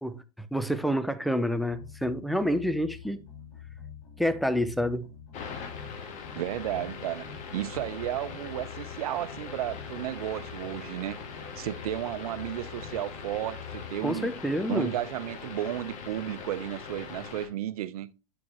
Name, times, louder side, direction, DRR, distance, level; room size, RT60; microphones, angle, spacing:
voice 1, 0.0-3.2 4.2-5.1 14.0-14.9, equal, ahead, 0.6 m, -28 dB
sound 1, 1.7-14.0, left 8 dB, 85° left, 5.1 m, -46 dB
sound 2, 5.3-17.5, left 5 dB, 40° left, 1.8 m, -42 dB
voice 2, 6.4-11.2 11.6-14.3 14.7-18.1, right 13 dB, 75° right, 0.7 m, -33 dB
9.5 x 6.0 x 2.9 m
hypercardioid pair, 115°, 19 cm